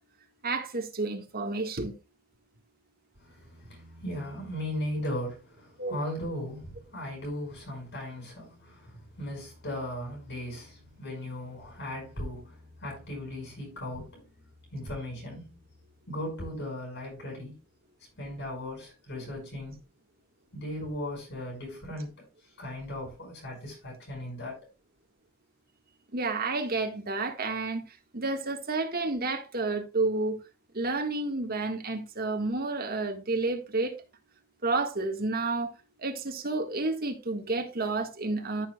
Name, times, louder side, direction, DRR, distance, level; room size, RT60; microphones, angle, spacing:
voice 1, 0.4-1.9 5.8-6.0 26.1-27.8 28.1-30.4 30.7-34.0 34.6-35.7 36.0-38.7, right 3 dB, 45° right, 1.7 m, -30 dB
voice 2, 3.2-14.3 14.7-15.6 16.1-17.6 18.2-19.8 20.5-22.2 22.6-24.6, left 1 dB, 55° left, 5.8 m, -37 dB
14.5 x 7.0 x 2.3 m
head